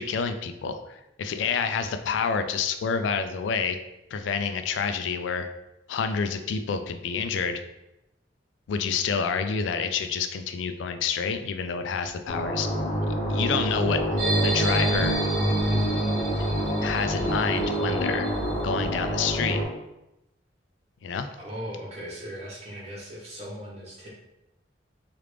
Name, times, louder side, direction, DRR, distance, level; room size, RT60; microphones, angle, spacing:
voice 1, 0.0-3.8 4.1-5.5 5.9-7.6 8.7-12.7 13.3-14.0 14.4-15.2 16.8-18.3 18.6-19.6 21.0-21.3, left 6 dB, 85° left, 9 dB, 0.3 m, -28 dB
sound 1, 12.3-19.6, equal, 35° left, 0.7 m, -26 dB
sound 2, 14.2-18.9, right 2 dB, 80° right, 0.6 m, -32 dB
voice 2, 21.4-24.1, equal, 35° right, -5 dB, 1.0 m, -38 dB
3.2 x 2.4 x 3.2 m, 0.90 s
head